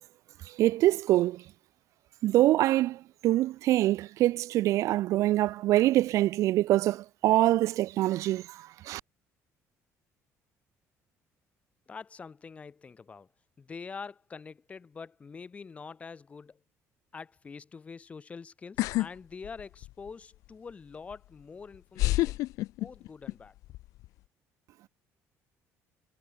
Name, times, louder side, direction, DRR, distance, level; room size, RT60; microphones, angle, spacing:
voice 1, 0.5-1.4 2.2-9.0, right 15 dB, 65° right, 0.8 m, -25 dB
voice 2, 11.9-13.3 13.6-16.6 17.1-22.4 22.8-23.5, left 5 dB, 25° left, 2.4 m, -45 dB
sound 1, 18.8-19.1 19.4-20.1 21.1-21.2 22.0-23.3 23.6-24.1, left 18 dB, 70° left, 0.5 m, -28 dB
cardioid pair, 150°, 6 cm